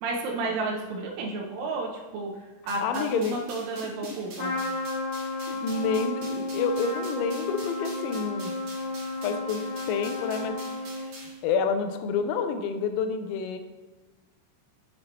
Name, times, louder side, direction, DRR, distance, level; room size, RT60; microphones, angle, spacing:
voice 1, 0.0-4.5, right 3 dB, 80° right, -1 dB, 3.1 m, -32 dB
sound 1, 2.7-11.4, right 2 dB, 60° right, 2.7 m, -46 dB
voice 2, 2.8-3.4 3.8-3.9 5.4-8.5 9.2-10.6 11.4-13.6, left 5 dB, 90° left, 8 dB, 3.3 m, -28 dB
Trumpet, 4.4-11.3, left 2 dB, 75° left, 3.0 m, -32 dB
7.4 x 6.4 x 2.9 m, 1.2 s
omnidirectional pair, 5.9 m